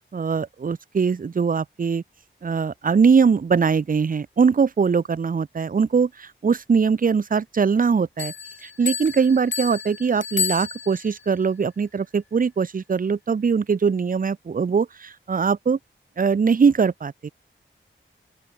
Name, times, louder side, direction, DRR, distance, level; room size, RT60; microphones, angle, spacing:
voice 1, 0.1-2.0 2.4-8.3 8.6-15.8 16.2-17.3, right 5 dB, 45° right, 0.6 m, -21 dB
Bell, 8.2-11.3, left 6 dB, 65° left, 1.2 m, -30 dB
open air
wide cardioid pair, 90°, 21 cm